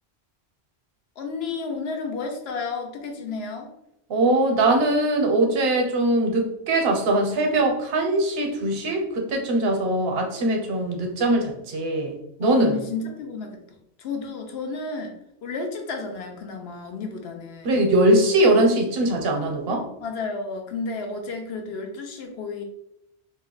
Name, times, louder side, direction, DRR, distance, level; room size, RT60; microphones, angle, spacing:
voice 1, 1.2-3.7 12.4-13.6 14.0-17.8 20.0-22.6, left 4 dB, 75° left, 4 dB, 0.9 m, -32 dB
voice 2, 4.1-12.8 17.6-19.9, right 1 dB, 70° right, 2 dB, 0.9 m, -21 dB
2.7 x 2.1 x 3.8 m, 0.82 s
omnidirectional pair, 1.1 m